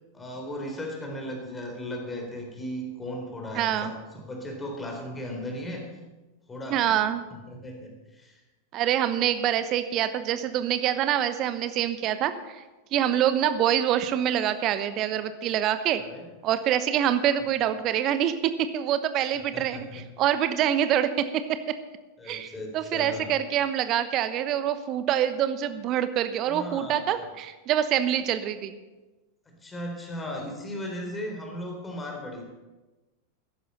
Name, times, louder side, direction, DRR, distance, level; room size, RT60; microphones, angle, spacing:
voice 1, 0.1-5.9 6.5-8.4 16.0-16.3 19.5-20.1 22.2-23.4 26.5-27.1 29.5-32.4, equal, 15° left, 1 dB, 3.8 m, -36 dB
voice 2, 3.5-3.9 6.7-7.3 8.7-12.6 12.9-16.0 16.4-21.6 22.3-28.8, right 10 dB, 35° right, 11 dB, 1.0 m, -25 dB
14.5 x 11.0 x 5.5 m, 1.2 s
figure-of-eight pair, 90°, 0 cm